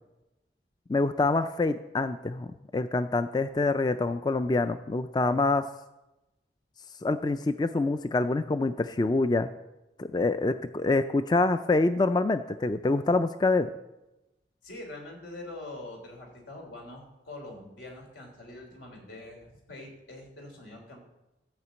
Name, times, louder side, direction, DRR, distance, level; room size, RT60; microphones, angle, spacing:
voice 1, 0.9-2.5 2.7-5.7 7.0-9.5 10.0-13.7, left 3 dB, 25° left, 10 dB, 0.3 m, -26 dB
voice 2, 14.6-21.0, left 2 dB, 90° left, 1 dB, 3.3 m, -44 dB
14.0 x 5.1 x 8.1 m, 0.99 s
head